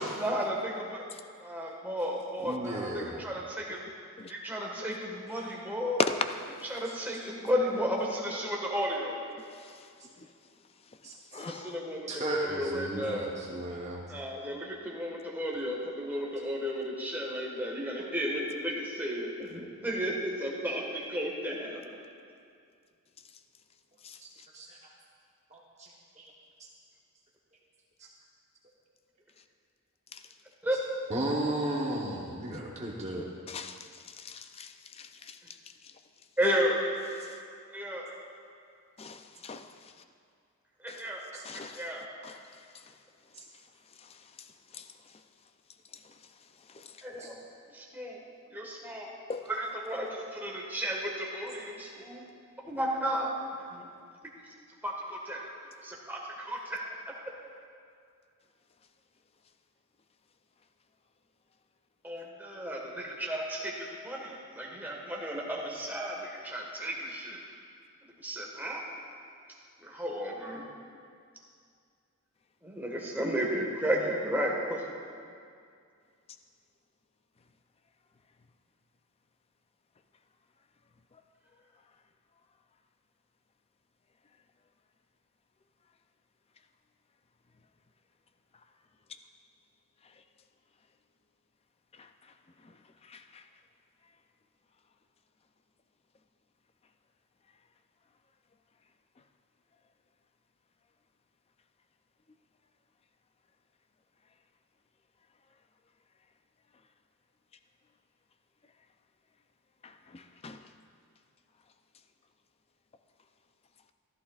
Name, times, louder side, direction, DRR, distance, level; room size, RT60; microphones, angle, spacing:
voice 1, 0.2-1.0 1.4-3.8 4.3-6.0 6.7-9.2 11.3-13.3 14.1-22.0 30.6-30.8 36.4-36.8 37.7-38.1 40.8-41.2 41.5-42.1 47.0-47.4 47.7-48.2 48.5-49.1 49.5-52.2 52.6-53.3 53.7-53.9 54.8-57.1 62.0-67.4 68.2-68.8 69.8-70.6 72.6-74.9, equal, 10° right, 1.5 m, -33 dB
voice 2, 2.4-3.2 5.4-5.5 11.0-11.4 12.1-14.0 24.2-24.3 24.5-24.8 25.5-26.3 31.1-33.2 37.2-37.3 41.3-41.4 43.3-43.4 47.2-47.3, right 1 dB, 30° right, 1.0 m, -35 dB
voice 3, 9.5-9.9 10.2-10.3 11.3-11.7 24.0-24.2 30.1-30.2 33.5-35.4 37.2-37.3 39.0-39.7 40.9-41.0 41.4-41.8 42.2-42.4 44.0-44.1 44.7-44.9 46.7-46.9 49.3-49.5 92.0-92.1 93.1-93.4 109.8-110.6, left 4 dB, 25° left, 0.4 m, -38 dB
14.5 x 13.5 x 2.4 m
head